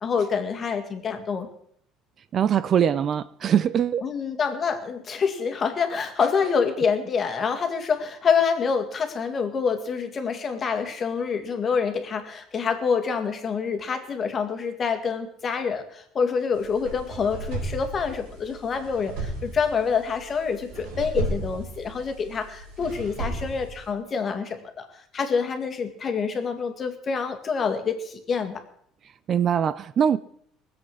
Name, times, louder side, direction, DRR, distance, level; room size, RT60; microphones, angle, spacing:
voice 1, 0.0-1.5 4.0-28.6, left 6 dB, 30° left, 1.9 m, -26 dB
voice 2, 2.3-4.0 29.3-30.2, right 8 dB, 40° right, 0.5 m, -22 dB
sound 1, 16.5-23.9, right 2 dB, 90° right, 5.1 m, -34 dB
20.0 x 7.9 x 6.2 m
cardioid pair, 130°, 0 cm